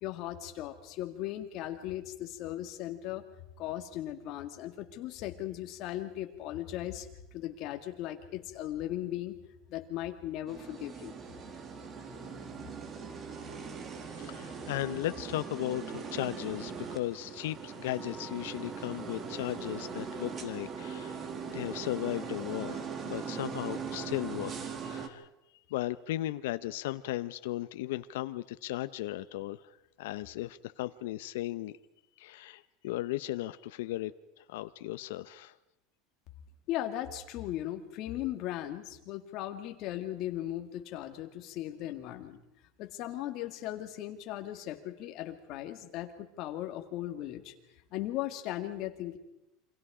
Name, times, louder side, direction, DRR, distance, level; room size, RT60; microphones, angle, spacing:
voice 1, 0.0-3.3 3.6-7.1 7.3-9.4 9.7-11.2 36.7-42.4 42.8-47.5 47.9-49.2, left 13 dB, 40° left, 5 dB, 2.1 m, -37 dB
sound 1, 10.5-25.1, right 5 dB, 25° right, 1.6 m, -40 dB
voice 2, 14.1-25.3 25.7-29.6 30.0-31.7 32.2-34.1 34.4-35.5, left 15 dB, 85° left, 12 dB, 0.8 m, -36 dB
28.0 x 25.5 x 5.0 m, 0.89 s
cardioid pair, 175°, 0 cm